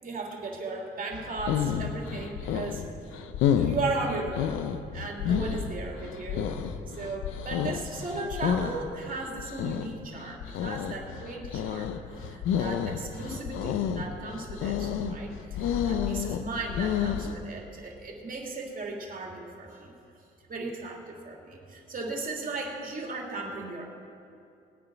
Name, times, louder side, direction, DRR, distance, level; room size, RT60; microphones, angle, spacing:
voice 1, 0.0-2.8 3.6-4.5 4.9-6.5 6.9-11.9 12.2-19.9 20.5-23.8, right 3 dB, 45° right, -1 dB, 3.0 m, -36 dB
sound 1, 1.1-17.3, left 8 dB, 90° left, 0.8 m, -30 dB
20.0 x 8.9 x 6.0 m, 2.6 s
cardioid pair, 90°, 20 cm